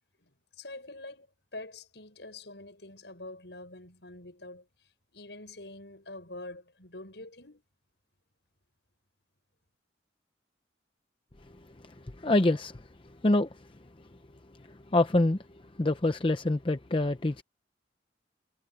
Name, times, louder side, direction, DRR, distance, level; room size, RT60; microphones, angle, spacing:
voice 1, 0.2-1.3 1.5-7.6, left 2 dB, 70° left, 6.5 m, -46 dB
voice 2, 12.2-12.9 13.2-13.5 14.7-15.4 15.8-17.4, left 2 dB, 30° left, 0.7 m, -25 dB
head